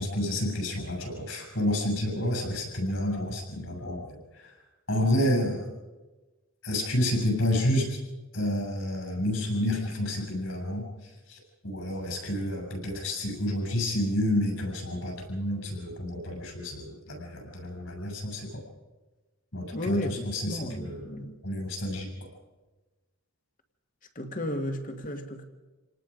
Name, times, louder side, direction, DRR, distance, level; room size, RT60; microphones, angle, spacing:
voice 1, 0.0-4.5 4.9-5.7 6.6-8.0 8.3-10.9 11.3-18.6 19.5-21.0 21.4-22.1, left 1 dB, 65° left, 7.4 m, -29 dB
voice 2, 19.7-21.4 24.2-25.4, left 1 dB, 35° left, 1.7 m, -33 dB
27.5 x 19.0 x 5.1 m
head